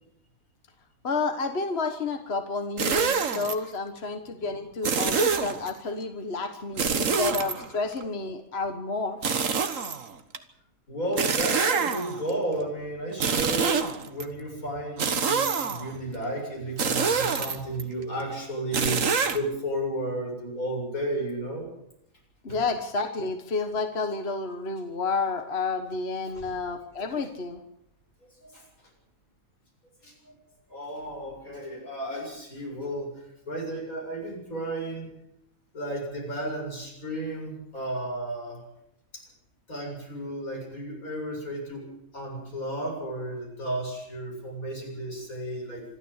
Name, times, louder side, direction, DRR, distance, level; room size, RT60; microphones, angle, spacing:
voice 1, 1.0-9.2 22.4-27.6, left 3 dB, 50° left, 6 dB, 1.6 m, -30 dB
sound 1, 2.8-3.5 4.8-5.7 6.8-8.0 9.2-10.4 11.2-12.3 13.1-14.2 15.0-16.0 16.8-17.8 18.7-19.4, right 5 dB, 65° right, 1.8 m, -26 dB
voice 2, 10.9-21.7 22.5-22.6 26.3-26.5 28.4-28.7 30.0-30.3 30.7-33.1 33.5-35.1 35.7-38.6 39.1-39.2 39.7-41.9 42.1-45.8, right 1 dB, 85° left, 0 dB, 7.9 m, -33 dB
26.0 x 12.5 x 8.1 m, 0.78 s
omnidirectional pair, 1.4 m